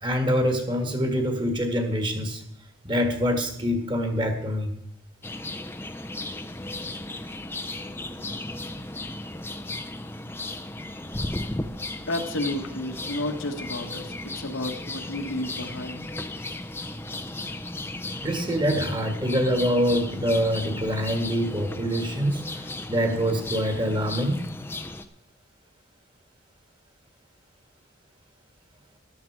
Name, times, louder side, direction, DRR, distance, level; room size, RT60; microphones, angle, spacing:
voice 1, 0.0-2.4 2.8-4.7 18.2-24.5, equal, 25° right, 5 dB, 1.7 m, -25 dB
sound 1, 5.2-25.1, left 2 dB, 10° left, 0.6 m, -35 dB
voice 2, 12.1-16.1, left 1 dB, 80° left, 4 dB, 1.7 m, -31 dB
14.0 x 12.0 x 4.7 m, 0.73 s
head